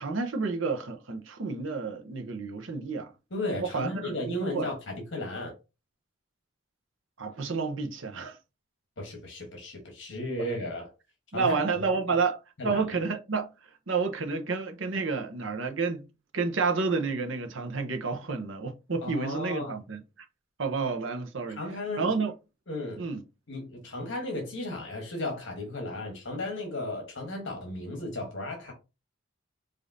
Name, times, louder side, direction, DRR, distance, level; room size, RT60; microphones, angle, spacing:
voice 1, 0.0-3.1 3.6-4.7 7.2-8.3 11.3-12.4 12.6-13.5 13.9-16.1 16.3-20.0 20.6-21.6 22.0-22.3 23.0-23.2, right 4 dB, 70° right, 0.8 m, -30 dB
voice 2, 3.3-5.5 9.0-10.9 11.3-12.2 12.6-12.8 19.0-19.8 21.5-22.1 22.7-23.0 23.5-28.7, left 1 dB, 65° left, 1.1 m, -35 dB
5.0 x 2.6 x 2.6 m
head